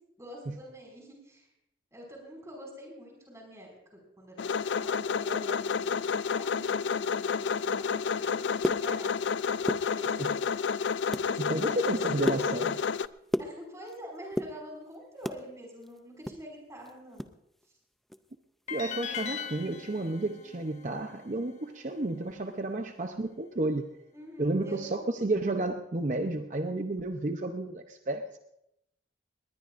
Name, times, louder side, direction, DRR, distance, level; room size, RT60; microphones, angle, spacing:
voice 1, 0.2-1.5 1.9-10.3 11.2-12.6 13.4-17.3 24.1-25.1, equal, 15° right, 0 dB, 5.5 m, -46 dB
sound 1, 4.4-13.1, left 6 dB, 85° left, 0.4 m, -30 dB
sound 2, 8.6-9.3 9.6-10.4 10.8-11.3 11.7-14.0 14.3-15.4 15.8-17.4 17.6-17.7 18.1-18.3 18.7-18.9, equal, ahead, 0.4 m, -34 dB
voice 2, 11.4-12.7 18.7-23.9 24.4-28.4, right 2 dB, 45° right, 6 dB, 0.7 m, -31 dB
sound 3, 18.7-21.8, left 7 dB, 40° left, 1.1 m, -40 dB
20.0 x 19.5 x 2.5 m, 0.83 s
head